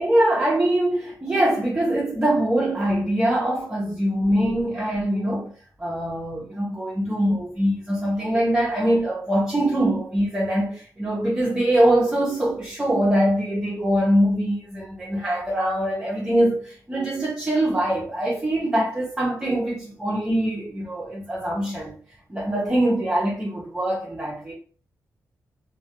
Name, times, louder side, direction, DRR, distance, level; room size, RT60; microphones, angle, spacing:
voice 1, 0.0-5.5 5.8-21.9 22.3-24.5, right 1 dB, 15° right, 0.5 m, -23 dB
2.2 x 2.1 x 2.8 m
wide cardioid pair, 160°, 6 cm